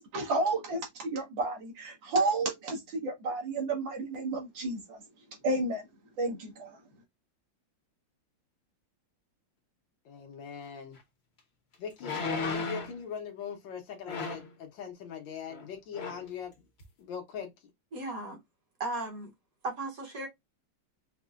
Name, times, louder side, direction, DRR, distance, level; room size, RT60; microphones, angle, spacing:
voice 1, 0.0-5.0 5.4-5.8 6.2-6.8, right 2 dB, 80° right, 1.9 m, -31 dB
voice 2, 10.1-11.0 11.8-16.7 17.0-17.5, left 6 dB, 80° left, 1.6 m, -41 dB
sound 1, 11.0-11.1 12.0-13.0 14.1-14.5 15.5-15.7 15.9-16.3 16.8-16.9, left 4 dB, 50° left, 0.8 m, -35 dB
voice 3, 17.9-18.4 18.8-19.3 19.6-20.3, right 2 dB, 55° right, 1.3 m, -35 dB
5.2 x 2.1 x 2.4 m
omnidirectional pair, 2.1 m